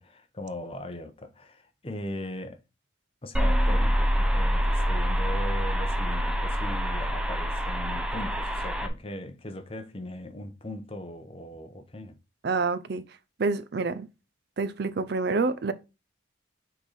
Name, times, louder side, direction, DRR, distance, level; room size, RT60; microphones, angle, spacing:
voice 1, 0.0-2.6 3.2-12.2, left 1 dB, 30° left, 0.8 m, -39 dB
sound 1, 3.3-8.9, equal, 5° right, 0.6 m, -26 dB
voice 2, 12.4-13.0 13.4-14.1 14.6-15.7, right 4 dB, 55° right, 0.5 m, -27 dB
6.0 x 3.9 x 4.0 m
head